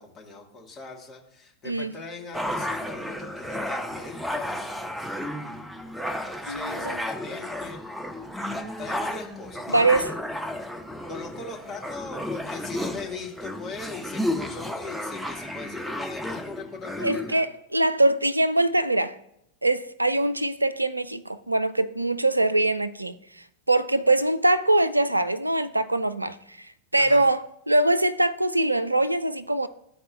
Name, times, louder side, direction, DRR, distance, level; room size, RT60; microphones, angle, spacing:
voice 1, 0.0-5.3 6.3-7.8 8.8-10.1 11.1-17.5 27.0-27.3, left 3 dB, 25° left, 1.4 m, -40 dB
sound 1, 2.3-17.3, left 1 dB, ahead, 0.5 m, -33 dB
voice 2, 6.5-7.0 9.7-10.1 17.0-19.2 19.6-23.2 23.7-26.4 26.9-29.7, right 2 dB, 85° right, 0.3 m, -23 dB
12.0 x 4.2 x 2.2 m
figure-of-eight pair, 90°, 0 cm